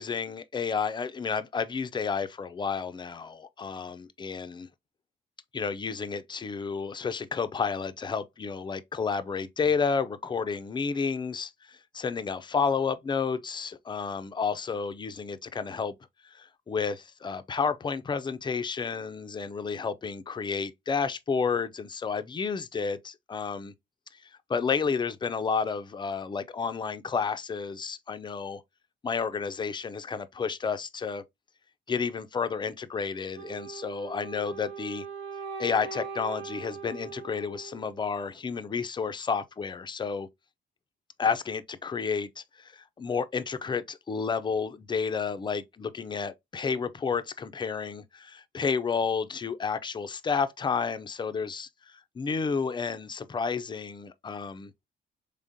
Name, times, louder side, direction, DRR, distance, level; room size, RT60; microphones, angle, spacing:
voice 1, 0.0-4.7 5.5-15.9 16.3-23.7 24.5-28.6 29.0-31.2 31.9-35.1 35.6-40.3 41.2-54.7, left 5 dB, 25° left, 0.4 m, -31 dB
Wind instrument woodwind instrument, 33.3-38.4, right 6 dB, 70° right, 0.9 m, -41 dB
3.6 x 3.3 x 2.6 m
cardioid pair, 90°, 20 cm